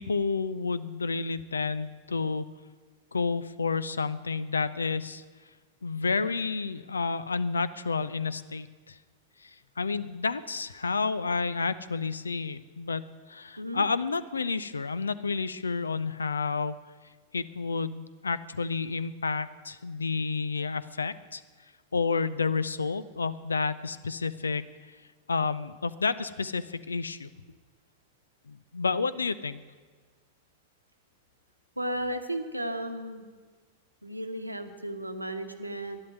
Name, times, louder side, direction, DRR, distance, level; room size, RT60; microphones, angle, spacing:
voice 1, 0.0-2.5 3.1-5.2 5.8-9.0 9.4-13.0 13.3-16.8 17.3-21.4 21.9-24.7 25.3-27.3 28.5-29.6, left 4 dB, 75° left, 16 dB, 0.6 m, -30 dB
voice 2, 31.8-33.3 34.0-36.0, right 1 dB, 85° right, 7 dB, 1.1 m, -34 dB
11.5 x 11.0 x 9.6 m, 1.4 s
figure-of-eight pair, 90°, 0 cm